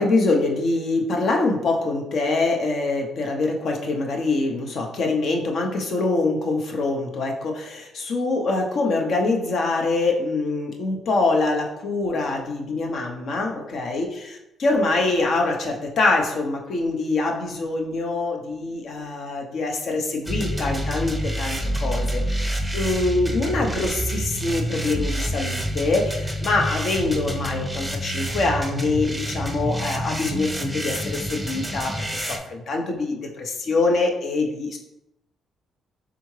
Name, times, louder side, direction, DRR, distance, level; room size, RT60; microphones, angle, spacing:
voice 1, 0.0-34.8, left 3 dB, 60° left, 1 dB, 0.8 m, -24 dB
sound 1, 20.3-32.4, equal, 5° right, 0.6 m, -28 dB
3.6 x 3.4 x 3.2 m, 0.88 s
cardioid pair, 90°, 0 cm